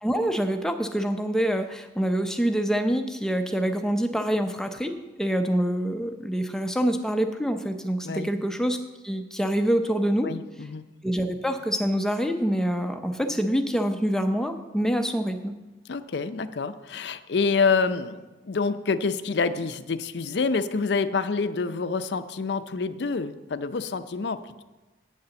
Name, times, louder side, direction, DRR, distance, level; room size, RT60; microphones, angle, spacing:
voice 1, 0.0-4.9 5.2-8.8 9.0-10.3 11.0-15.5, equal, 5° left, 6 dB, 0.5 m, -26 dB
voice 2, 10.2-10.9 15.9-24.6, left 4 dB, 65° left, 12 dB, 0.5 m, -27 dB
8.9 x 6.7 x 6.9 m, 1.2 s
head